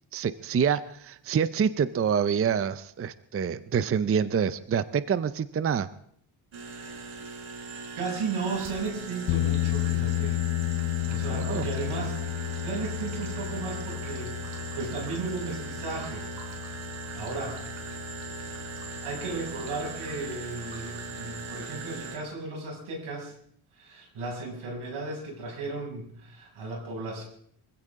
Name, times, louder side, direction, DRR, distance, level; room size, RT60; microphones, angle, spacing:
voice 1, 0.1-5.9 11.2-11.6, right 7 dB, 30° right, 14 dB, 0.5 m, -27 dB
sound 1, 6.5-22.2, right 4 dB, 70° right, 4.1 m, -39 dB
voice 2, 8.0-10.4 11.1-12.2 12.6-16.3 17.1-17.6 19.0-23.3 23.7-27.2, right 3 dB, 85° right, 0 dB, 6.6 m, -35 dB
sound 2, 9.3-21.6, left 18 dB, 65° left, 0.6 m, -33 dB
25.0 x 15.5 x 3.7 m, 0.67 s
cardioid pair, 125°, 49 cm